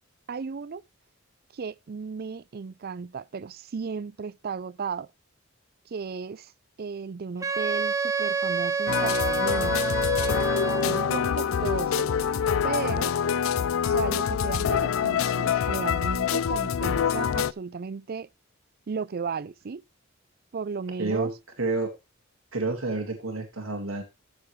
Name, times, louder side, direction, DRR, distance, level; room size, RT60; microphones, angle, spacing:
voice 1, 0.3-0.8 1.5-5.1 5.9-6.5 6.8-9.9 10.8-12.1 12.6-13.1 13.8-18.3 18.9-19.8 20.5-21.3, right 5 dB, 50° right, 0.5 m, -34 dB
Wind instrument woodwind instrument, 7.4-11.2, right 4 dB, 15° right, 0.8 m, -28 dB
sound 1, 8.9-17.5, left 8 dB, 80° left, 0.4 m, -25 dB
voice 2, 21.0-21.3 21.6-21.9 22.5-24.0, right 3 dB, 80° right, 2.1 m, -29 dB
12.5 x 7.0 x 3.2 m
head